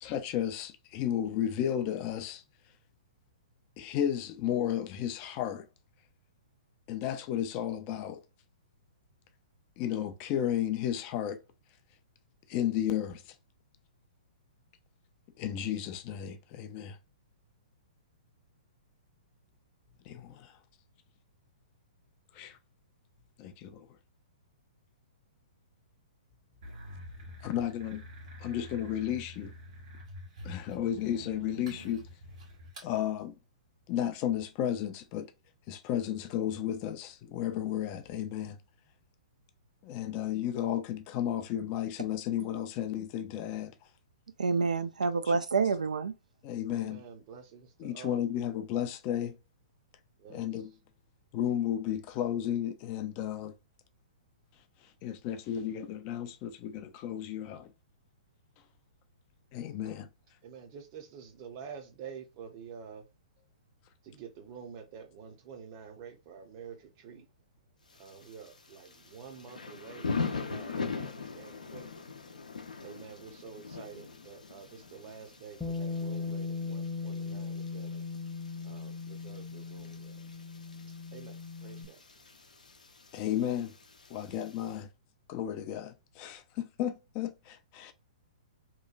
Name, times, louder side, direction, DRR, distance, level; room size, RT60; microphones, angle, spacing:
voice 1, 0.0-2.4 3.8-5.7 6.9-8.2 9.8-11.4 12.5-13.2 15.4-17.0 20.1-20.5 22.4-22.6 23.4-23.9 27.4-28.0 28.4-29.5 30.4-32.0 32.8-33.3 33.9-35.3 35.7-38.6 39.8-43.7 46.4-47.0 47.8-49.3 50.3-50.7 51.3-53.5 55.0-57.7 59.5-60.1 83.1-83.7 84.1-84.9 85.3-87.9, left 10 dB, 35° left, 0.4 m, -33 dB
sound 1, 26.6-32.9, left 1 dB, 60° right, 1.5 m, -47 dB
voice 2, 44.4-46.1, right 4 dB, 80° right, 0.4 m, -28 dB
voice 3, 46.7-48.2 50.2-50.6 60.4-63.0 64.0-67.2 68.0-71.9 72.8-78.0 78.6-80.2 81.1-82.0, right 7 dB, 40° right, 0.7 m, -48 dB
Thunder / Rain, 67.9-84.8, left 4 dB, 80° left, 0.6 m, -42 dB
Bass guitar, 75.6-81.9, left 4 dB, 5° left, 0.7 m, -38 dB
3.0 x 2.2 x 2.4 m
figure-of-eight pair, 120°, 4 cm